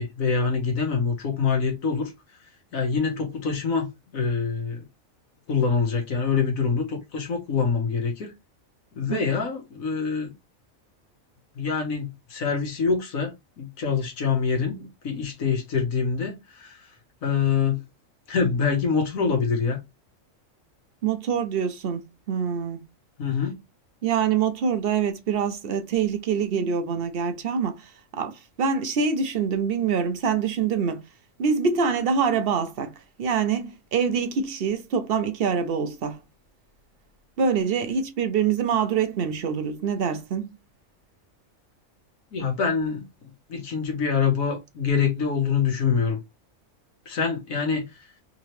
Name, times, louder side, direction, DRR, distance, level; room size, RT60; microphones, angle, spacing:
voice 1, 0.0-2.1 2.7-4.9 5.5-8.3 8.9-10.3 11.6-16.9 17.2-17.8 18.3-19.8 23.2-23.6 42.3-43.1 43.5-46.2 47.1-48.1, left 5 dB, 90° left, 1.4 m, -25 dB
voice 2, 21.0-22.0 22.3-22.8 24.0-31.0 31.4-32.9 33.2-36.2 37.4-40.5, right 6 dB, 55° right, 0.7 m, -25 dB
3.7 x 2.9 x 3.2 m
omnidirectional pair, 1.4 m